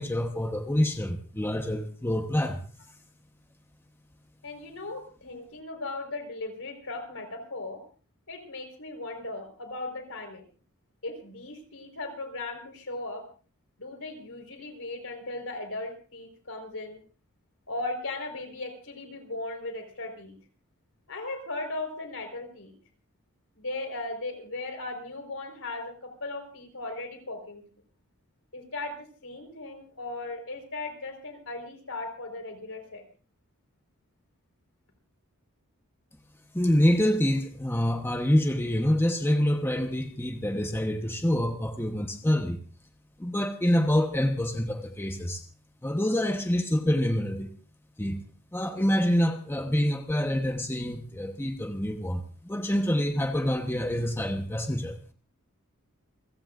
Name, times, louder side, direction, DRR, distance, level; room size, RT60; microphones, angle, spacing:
voice 1, 0.0-2.6 36.5-42.6 43.2-45.4 45.8-47.5 48.0-48.2 48.5-55.0, equal, 10° left, 1.1 m, -26 dB
voice 2, 4.4-7.8 8.3-10.5 11.0-13.2 13.8-17.0 17.7-20.3 21.1-22.7 23.5-27.6 28.5-33.0, left 2 dB, 70° left, 4.7 m, -37 dB
29.0 x 16.0 x 2.6 m
head